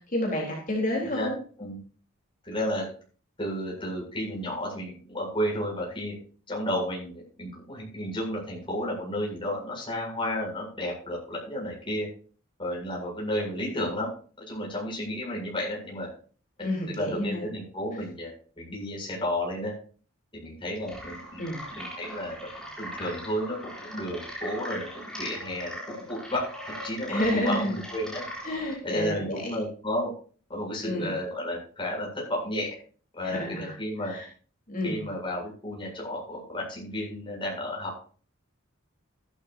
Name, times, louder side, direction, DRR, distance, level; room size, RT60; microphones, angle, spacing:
voice 1, 0.1-1.4 16.6-17.4 21.4-21.6 27.1-27.7 28.4-29.6 30.8-31.1 33.2-33.7 34.0-34.3 34.7-35.0, left 1 dB, 40° left, -1 dB, 3.9 m, -29 dB
voice 2, 2.4-2.9 3.4-6.1 6.5-12.1 12.6-14.1 14.4-16.1 16.8-19.7 20.3-21.4 21.7-22.5 22.8-28.2 28.8-30.1 30.5-32.7 33.1-34.1 34.8-38.0, equal, 25° left, -3 dB, 7.9 m, -32 dB
sound 1, 20.8-28.7, equal, 5° left, 3.9 m, -40 dB
15.5 x 12.5 x 2.8 m, 0.40 s
head